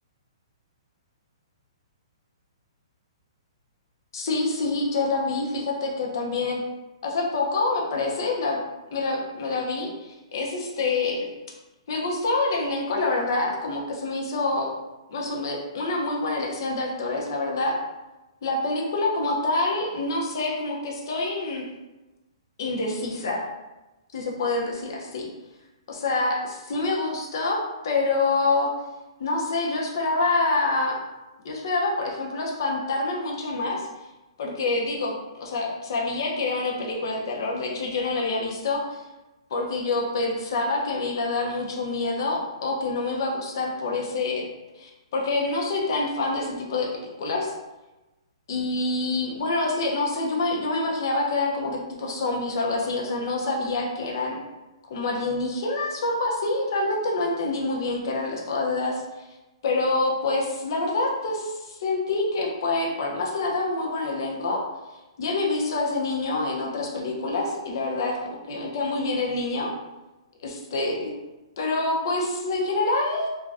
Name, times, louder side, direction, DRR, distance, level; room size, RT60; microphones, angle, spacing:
voice 1, 4.1-6.6 7.0-8.6 8.9-11.3 11.9-14.7 15.1-17.8 18.4-21.7 22.6-23.5 24.1-25.3 25.9-28.7 29.2-31.0 31.4-33.9 34.4-39.0 39.5-44.5 44.8-46.9 47.2-47.5 48.5-54.4 54.9-59.0 59.6-64.6 65.2-69.7 70.4-71.1 71.6-73.3, left 2 dB, 45° left, -1 dB, 0.6 m, -26 dB
3.3 x 2.2 x 2.5 m, 1.1 s
hypercardioid pair, 175°, 3 cm